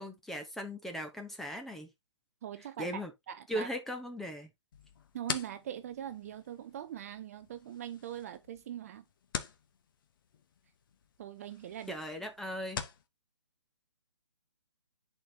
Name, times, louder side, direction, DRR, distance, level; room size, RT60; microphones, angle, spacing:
voice 1, 0.0-1.9 2.8-3.1 3.5-4.5 11.9-12.8, equal, ahead, 0.7 m, -38 dB
voice 2, 2.4-3.7 5.1-9.0 11.2-12.0, right 10 dB, 30° right, 0.4 m, -42 dB
sound 1, 4.7-13.1, left 7 dB, 45° left, 1.0 m, -45 dB
10.0 x 4.4 x 2.7 m
hypercardioid pair, 150°, 15 cm